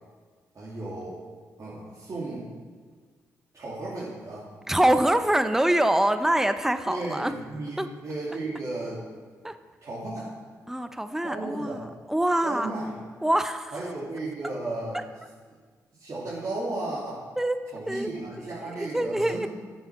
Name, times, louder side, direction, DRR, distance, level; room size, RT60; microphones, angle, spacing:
voice 1, 0.5-1.2 1.6-2.5 3.5-4.5 6.9-9.0 9.8-10.3 11.2-11.8 12.4-12.9 13.7-15.0 16.0-17.2 17.7-19.5, right 2 dB, 50° right, -9 dB, 3.1 m, -34 dB
voice 2, 4.7-7.3 7.8-7.9 9.4-9.6 10.7-12.7 13.2-13.7 17.4-17.6 17.9-18.1 18.6-19.5, right 1 dB, 5° right, 10 dB, 0.7 m, -24 dB
9.4 x 7.0 x 6.1 m, 1.5 s
supercardioid pair, 45°, 7 cm